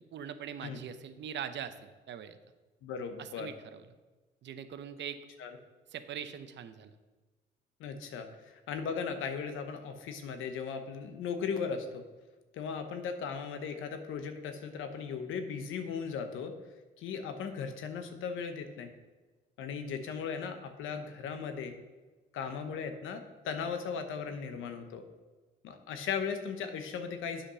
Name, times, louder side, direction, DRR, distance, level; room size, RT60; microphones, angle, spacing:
voice 1, 0.1-2.4 3.2-3.8 4.4-5.2 5.9-6.9, right 8 dB, 65° right, 10 dB, 0.7 m, -42 dB
voice 2, 2.8-3.5 5.4-5.6 7.8-12.0 12.5-16.6 17.0-18.9 19.6-21.7 22.3-25.1 25.6-27.5, left 6 dB, 85° left, 7 dB, 1.0 m, -37 dB
8.7 x 5.1 x 5.6 m, 1.2 s
cardioid pair, 90°, 20 cm